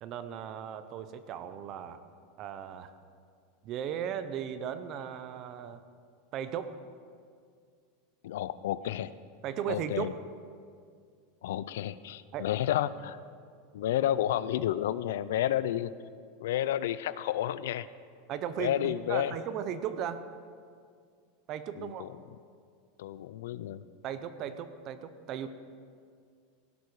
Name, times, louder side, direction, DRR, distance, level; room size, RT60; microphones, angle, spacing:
voice 1, 0.0-2.0 2.4-2.9 3.6-5.8 6.3-6.7 9.4-10.2 12.3-12.5 18.3-20.2 21.5-22.1 24.0-25.5, right 9 dB, 30° right, 12 dB, 0.6 m, -36 dB
voice 2, 8.2-9.1 9.7-10.1 11.4-13.2 13.7-15.9 16.4-17.9 18.6-19.4 21.8-22.1 23.0-23.8, left 12 dB, 75° left, 16 dB, 0.5 m, -31 dB
16.5 x 11.5 x 4.8 m, 2.2 s
supercardioid pair, 175°, 0 cm